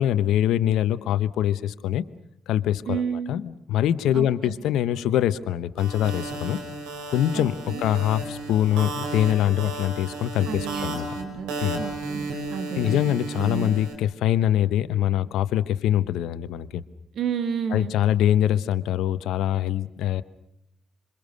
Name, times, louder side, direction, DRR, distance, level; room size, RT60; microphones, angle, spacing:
voice 1, 0.0-2.1 2.5-6.6 7.1-11.1 11.6-11.8 12.7-16.8 17.7-20.2, left 11 dB, 75° left, 14 dB, 1.0 m, -24 dB
voice 2, 2.9-3.3 4.1-4.6 7.3-7.8 10.5-13.7 17.1-17.9, right 7 dB, 65° right, 9 dB, 1.9 m, -32 dB
sound 1, 5.8-13.9, right 2 dB, 85° right, 5.4 m, -33 dB
26.5 x 24.0 x 6.6 m, 0.82 s
hypercardioid pair, 50°, 0 cm